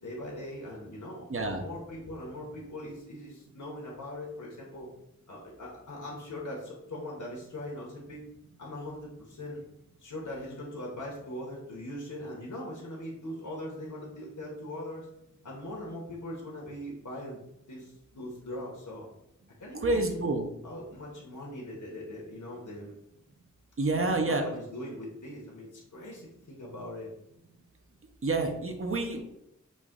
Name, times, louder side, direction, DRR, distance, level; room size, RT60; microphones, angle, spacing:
voice 1, 0.0-1.3 1.6-4.9 5.3-8.2 8.6-9.6 10.0-15.1 15.4-17.4 17.7-19.1 19.6-20.2 20.6-22.9 23.9-27.1, left 1 dB, 75° left, -3 dB, 1.0 m, -41 dB
voice 2, 1.3-1.6 19.8-20.4 23.8-24.4 28.2-29.2, right 2 dB, 45° right, 5 dB, 0.7 m, -28 dB
5.1 x 2.6 x 3.6 m, 0.79 s
wide cardioid pair, 70°, 31 cm